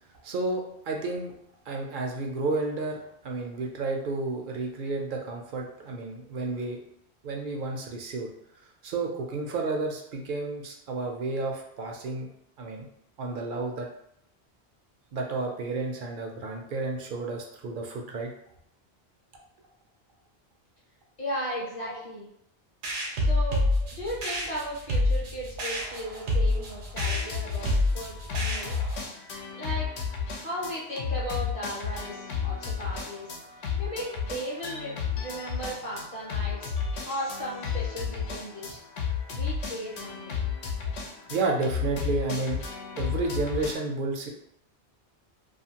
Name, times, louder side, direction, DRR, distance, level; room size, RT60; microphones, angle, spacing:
voice 1, 0.2-1.3 1.7-6.8 7.2-8.3 8.8-12.3 12.6-12.9 13.2-13.9 15.1-18.3 21.8-22.0 41.3-42.6 43.0-44.3, right 3 dB, 60° right, 1 dB, 0.6 m, -31 dB
voice 2, 21.2-22.3 23.1-23.7 23.9-28.7 29.5-29.9 30.4-33.3 33.8-36.7 37.1-38.8 39.3-40.4, equal, 35° left, -5 dB, 0.7 m, -36 dB
sound 1, 22.8-29.0, left 1 dB, 90° right, 1.0 m, -27 dB
sound 2, 27.0-43.7, left 6 dB, 90° left, 0.9 m, -33 dB
2.5 x 2.4 x 2.8 m, 0.72 s
omnidirectional pair, 1.1 m